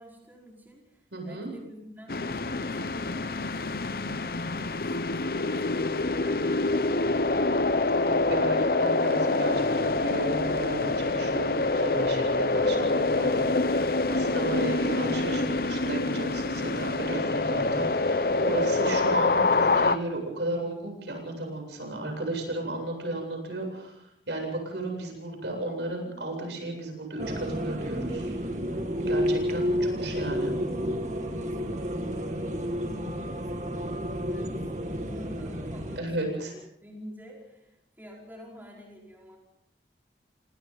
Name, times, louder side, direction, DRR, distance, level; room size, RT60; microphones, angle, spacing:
voice 1, 0.0-7.1 12.4-12.9 29.5-29.6 31.4-33.5 33.8-39.4, equal, 10° right, -2 dB, 4.8 m, -49 dB
voice 2, 1.1-1.5 7.9-28.4 29.1-30.5 36.0-36.5, right 2 dB, 85° right, 2 dB, 7.9 m, -34 dB
sound 1, 2.1-20.0, left 3 dB, 55° left, 0.8 m, -26 dB
sound 2, 27.2-36.0, equal, 40° right, 2.2 m, -31 dB
28.5 x 26.0 x 4.1 m, 0.79 s
head